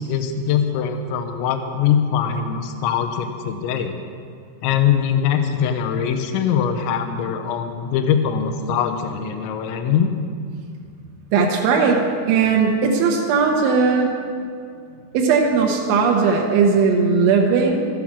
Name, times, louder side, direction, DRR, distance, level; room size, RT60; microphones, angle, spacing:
voice 1, 0.0-4.0 4.6-10.1, left 8 dB, 85° left, 5 dB, 2.7 m, -22 dB
voice 2, 11.3-14.1 15.1-17.9, right 5 dB, 75° right, 0 dB, 3.3 m, -18 dB
14.0 x 8.9 x 6.0 m, 2.3 s
omnidirectional pair, 6.0 m